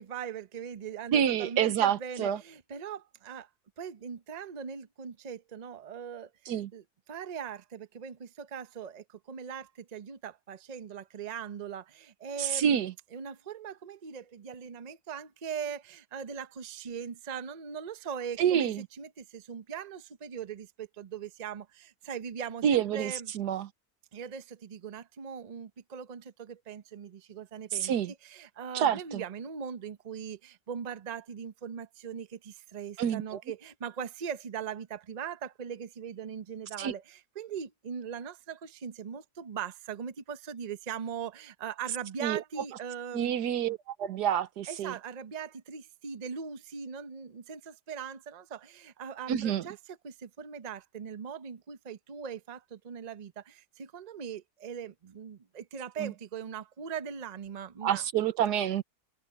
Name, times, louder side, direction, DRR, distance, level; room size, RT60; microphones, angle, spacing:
voice 1, 0.0-3.5 3.8-6.3 6.7-12.8 13.1-18.7 19.0-23.3 24.1-27.9 28.2-43.3 44.7-58.0, right 7 dB, 35° right, 0.7 m, -40 dB
voice 2, 1.1-2.4 6.5-6.7 12.4-12.9 18.4-18.9 22.6-23.7 27.7-28.1 28.7-29.2 33.0-33.4 36.8-36.9 42.2-42.4 43.1-45.0 49.3-49.7 56.0-56.1 57.8-58.8, right 9 dB, 85° right, 1.5 m, -28 dB
omnidirectional pair, 1.7 m